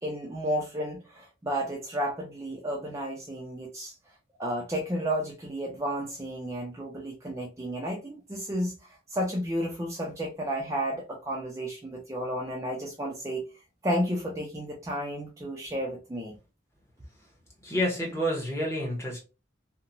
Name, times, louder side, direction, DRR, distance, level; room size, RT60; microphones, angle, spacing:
voice 1, 0.0-3.9 4.4-13.4 13.8-16.4, equal, 15° right, 0.4 m, -32 dB
voice 2, 17.6-19.2, equal, 15° left, 0.8 m, -29 dB
2.9 x 2.1 x 2.5 m
head